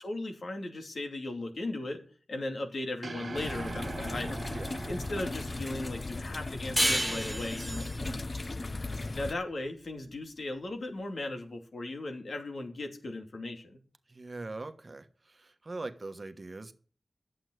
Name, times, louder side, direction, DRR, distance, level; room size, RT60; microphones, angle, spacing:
voice 1, 0.0-2.0 2.3-4.4 4.9-7.9 9.2-13.8, left 2 dB, 80° left, 2.7 m, -37 dB
sound 1, 3.0-7.4, right 3 dB, 65° right, 0.8 m, -43 dB
sound 2, 3.4-9.3, left 2 dB, 45° left, 0.6 m, -37 dB
voice 2, 4.5-4.8 8.0-8.3 14.1-16.7, right 2 dB, 45° right, 1.3 m, -42 dB
sound 3, 6.8-9.9, equal, 5° right, 0.7 m, -32 dB
11.5 x 7.9 x 8.0 m
wide cardioid pair, 85°, 0 cm